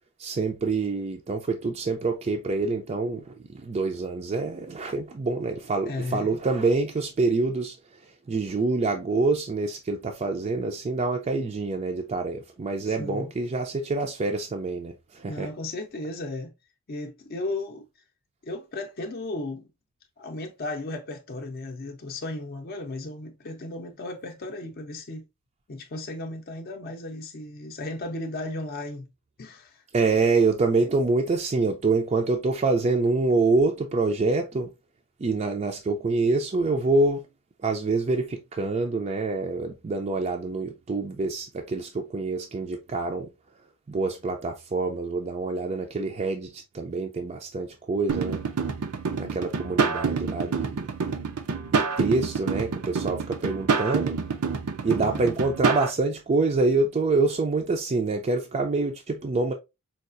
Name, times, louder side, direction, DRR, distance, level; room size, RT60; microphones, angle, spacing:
voice 1, 0.2-7.8 8.3-15.5 29.9-34.7 35.2-37.3 37.6-43.3 43.9-48.4 49.2-50.8 51.7-54.1 54.8-59.5, right 3 dB, 30° right, 0.4 m, -26 dB
voice 2, 5.8-6.4 12.9-13.3 15.3-16.5 16.9-17.8 18.4-19.7 20.2-25.2 25.7-29.1 29.4-29.8 54.8-55.3, left 2 dB, 45° left, 0.6 m, -35 dB
sound 1, 48.1-55.9, right 5 dB, 80° right, 0.5 m, -27 dB
4.6 x 2.4 x 2.5 m
head